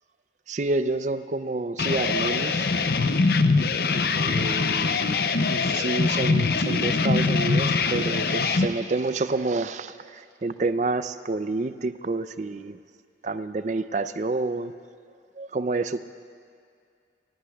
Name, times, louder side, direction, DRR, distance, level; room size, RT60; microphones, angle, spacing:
voice 1, 0.5-2.7 4.1-5.0 5.5-9.9 10.4-12.8 13.2-14.7 15.4-16.0, right 3 dB, 40° right, 11 dB, 0.4 m, -28 dB
sound 1, 1.8-8.7, left 4 dB, 60° left, 0.6 m, -23 dB
28.0 x 16.0 x 2.3 m, 2.3 s
head